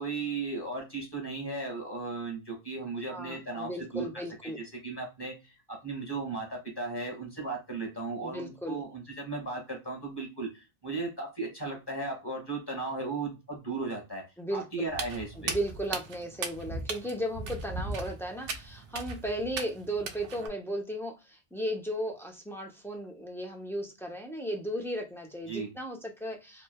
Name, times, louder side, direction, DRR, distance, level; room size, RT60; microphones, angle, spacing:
voice 1, 0.0-4.1 4.4-14.2 14.5-15.6 25.5-25.7, right 3 dB, 25° left, 0 dB, 1.1 m, -36 dB
voice 2, 3.1-4.6 8.2-8.8 14.4-14.9 15.4-26.6, equal, 5° left, 1 dB, 0.4 m, -35 dB
Walk footsteps, 14.9-20.5, right 4 dB, 70° right, 0.7 m, -38 dB
3.1 x 2.1 x 2.2 m, 0.27 s
omnidirectional pair, 1.1 m